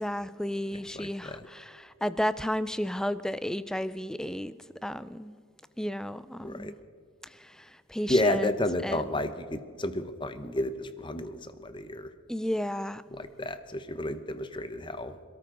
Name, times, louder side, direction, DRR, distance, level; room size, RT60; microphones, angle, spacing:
voice 1, 0.0-4.6 4.8-5.4 5.8-6.7 7.2-8.5 8.8-9.1 12.3-13.0, equal, 5° left, 0.3 m, -33 dB
voice 2, 1.0-1.4 6.4-6.7 8.1-12.1 13.1-15.2, left 1 dB, 25° left, 0.8 m, -31 dB
27.0 x 13.0 x 3.8 m
head